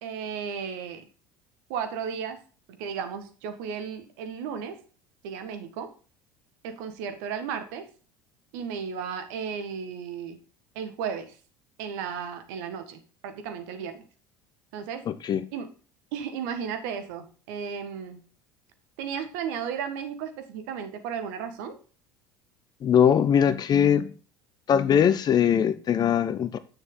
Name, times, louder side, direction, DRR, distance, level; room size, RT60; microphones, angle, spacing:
voice 1, 0.0-1.1 1.7-2.4 2.8-4.8 5.2-5.9 6.6-7.9 8.5-10.4 10.8-11.4 11.8-14.0 14.7-15.0 15.5-15.7 16.1-18.2 19.0-21.8, right 7 dB, 65° right, 1.8 m, -34 dB
voice 2, 15.1-15.4 22.8-24.1 24.7-26.6, left 8 dB, 40° left, 1.0 m, -21 dB
9.8 x 6.8 x 3.9 m
figure-of-eight pair, 70°, 11 cm